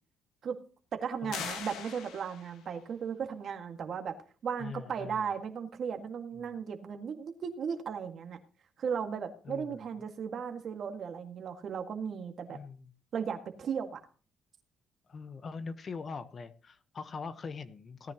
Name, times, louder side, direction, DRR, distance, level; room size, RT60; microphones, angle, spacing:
voice 1, 0.9-4.1 4.4-8.4 8.8-12.6 13.1-14.0, right 7 dB, 60° right, 5 dB, 1.9 m, -36 dB
sound 1, 1.3-2.7, left 7 dB, 90° left, 1.5 m, -41 dB
voice 2, 4.6-5.3 6.4-6.5 9.4-9.8 12.5-12.9 15.1-18.1, left 5 dB, 45° left, 11 dB, 1.1 m, -42 dB
17.5 x 9.8 x 3.0 m, 0.37 s
cardioid pair, 90°, 0 cm